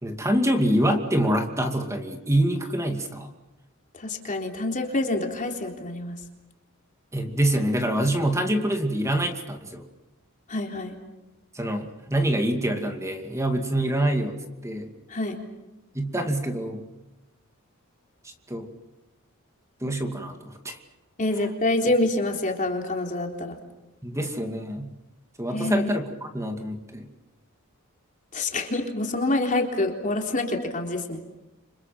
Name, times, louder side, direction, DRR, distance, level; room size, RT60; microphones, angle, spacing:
voice 1, 0.0-3.3 7.1-9.8 11.5-14.4 14.6-14.9 15.9-16.8 18.5-18.7 19.8-20.8 24.0-25.0 25.4-27.1, right 1 dB, 15° right, 4 dB, 2.4 m, -25 dB
voice 2, 3.9-6.1 10.5-11.0 15.1-15.4 21.2-23.6 25.5-25.9 28.3-31.2, left 2 dB, 35° left, 2 dB, 3.8 m, -27 dB
30.0 x 27.0 x 6.0 m, 1.0 s
head